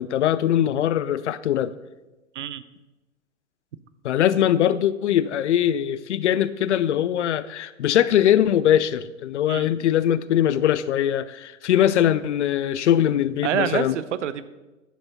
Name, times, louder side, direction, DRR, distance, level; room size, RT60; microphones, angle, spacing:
voice 1, 0.0-1.7 4.0-14.0, left 11 dB, 60° left, 16 dB, 0.6 m, -21 dB
voice 2, 13.4-14.4, right 9 dB, 60° right, 15 dB, 0.7 m, -27 dB
10.5 x 6.9 x 5.5 m, 1.1 s
figure-of-eight pair, 100°, 40 cm